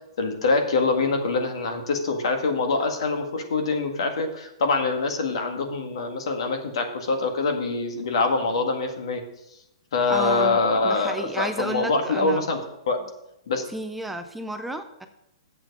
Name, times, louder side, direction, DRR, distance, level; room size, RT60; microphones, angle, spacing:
voice 1, 0.2-9.2 9.9-12.6 12.9-13.1 13.5-13.6, left 3 dB, 70° left, 5 dB, 1.7 m, -24 dB
voice 2, 10.1-10.6 10.8-12.5 13.7-15.1, right 1 dB, 5° right, 7 dB, 0.4 m, -32 dB
7.6 x 7.1 x 6.0 m, 0.83 s
hypercardioid pair, 155°, 3 cm